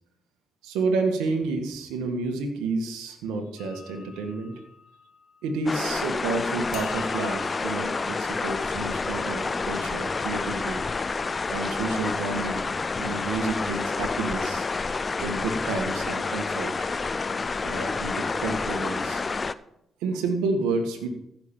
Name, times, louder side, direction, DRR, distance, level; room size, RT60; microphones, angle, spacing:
voice 1, 0.6-4.6 5.4-10.8 11.5-12.7 13.0-14.7 15.2-16.9 17.6-19.2 20.0-21.1, right 3 dB, 85° right, 4 dB, 1.7 m, -30 dB
sound 1, 3.6-6.0 6.7-10.6, left 6 dB, 75° left, 1.8 m, -47 dB
sound 2, 5.7-19.5, left 4 dB, 35° left, 0.6 m, -29 dB
14.5 x 6.1 x 7.2 m, 0.78 s
supercardioid pair, 55°, 0 cm